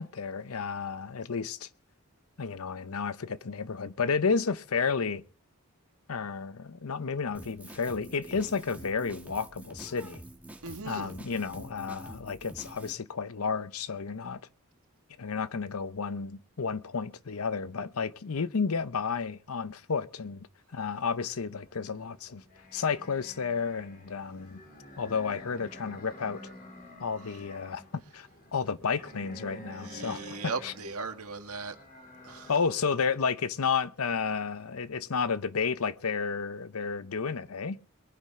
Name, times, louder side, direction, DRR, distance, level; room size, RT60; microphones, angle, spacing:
voice 1, 0.0-1.7 2.4-5.2 6.1-10.2 10.8-14.4 15.2-20.5 20.7-22.4 22.7-24.6 25.0-26.4 27.0-30.7 32.5-37.8, left 5 dB, 80° left, 0.7 m, -32 dB
Drum kit, 7.3-12.9, right 1 dB, 5° right, 1.5 m, -47 dB
voice 2, 10.6-11.1 29.7-31.8 32.2-32.5, right 4 dB, 85° right, 1.8 m, -38 dB
sound 1, 21.4-32.5, left 1 dB, 40° left, 3.4 m, -50 dB
22.5 x 10.0 x 3.7 m
head